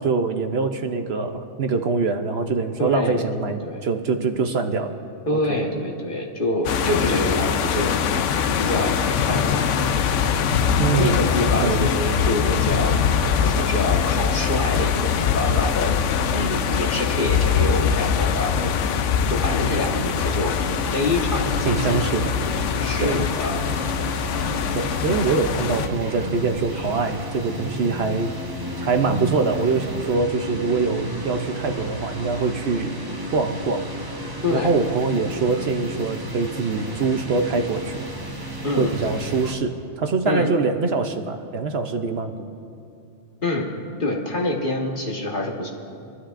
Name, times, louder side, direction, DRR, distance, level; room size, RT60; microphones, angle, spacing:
voice 1, 0.0-5.0 5.3-5.6 10.8-11.3 11.6-11.9 21.6-22.3 23.0-23.1 24.7-28.3 28.8-33.0 33.3-33.9 34.5-38.0 38.8-42.3, right 4 dB, 60° right, 6 dB, 0.9 m, -24 dB
voice 2, 2.8-3.8 5.3-7.9 8.6-9.8 11.0-13.0 13.4-15.9 16.3-18.8 19.3-20.5 20.9-22.0 22.8-23.6 34.4-34.7 38.6-38.9 40.2-40.5 43.4-43.7 44.0-45.7, left 1 dB, 45° left, -1 dB, 1.6 m, -26 dB
sound 1, 6.6-25.9, left 7 dB, 75° left, 0.9 m, -22 dB
Speech synthesizer, 9.6-10.0 11.1-11.6 13.0-13.4 14.5-15.0 16.3-16.9 18.1-18.7 19.9-20.5 21.8-22.2 23.4-23.7 25.1-25.4 26.7-27.2, equal, 60° left, 4.5 m, -45 dB
sound 2, 20.4-39.5, equal, 20° right, 0.9 m, -32 dB
27.0 x 13.0 x 2.5 m, 2.5 s
omnidirectional pair, 1.3 m